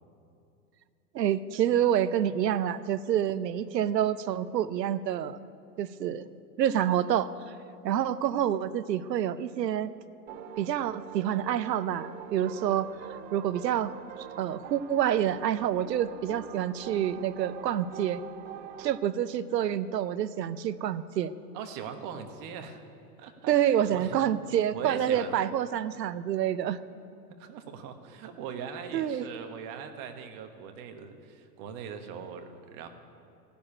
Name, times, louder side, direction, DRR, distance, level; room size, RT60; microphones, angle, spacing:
voice 1, 1.1-5.4 5.8-6.3 6.6-7.3 7.8-9.9 10.6-12.9 13.3-13.9 14.4-18.2 18.8-21.3 23.5-26.8 28.9-29.3, right 10 dB, 80° right, 15 dB, 0.7 m, -27 dB
sound 1, 10.3-19.0, right 9 dB, 20° right, 0.4 m, -44 dB
voice 2, 21.5-22.8 23.2-23.5 23.9-24.2 24.7-25.4 27.4-32.9, right 7 dB, 45° right, 6 dB, 1.5 m, -40 dB
15.5 x 7.1 x 8.7 m, 2.6 s
hypercardioid pair, 105°, 49 cm